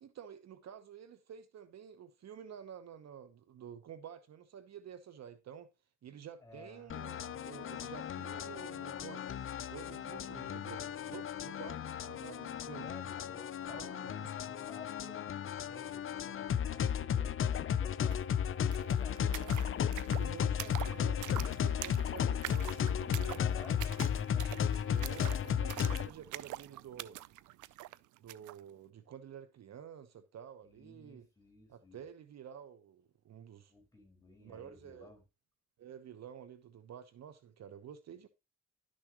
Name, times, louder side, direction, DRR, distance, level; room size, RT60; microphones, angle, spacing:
voice 1, 0.0-5.7 6.0-9.4 9.7-12.9 13.7-14.3 19.2-19.7 20.1-23.4 24.9-27.2 28.2-31.3 31.7-33.7 34.4-35.1 35.8-38.3, right 8 dB, 60° right, 1.1 m, -50 dB
voice 2, 6.4-6.9 12.8-18.2 23.3-24.6 30.6-32.0 33.7-35.2, left 1 dB, 10° left, 5.2 m, -56 dB
sound 1, 6.9-26.1, left 8 dB, 45° left, 0.6 m, -34 dB
sound 2, 18.1-18.2 18.4-28.6, right 16 dB, 80° right, 0.5 m, -46 dB
11.5 x 6.5 x 3.0 m
cardioid pair, 90°, 30 cm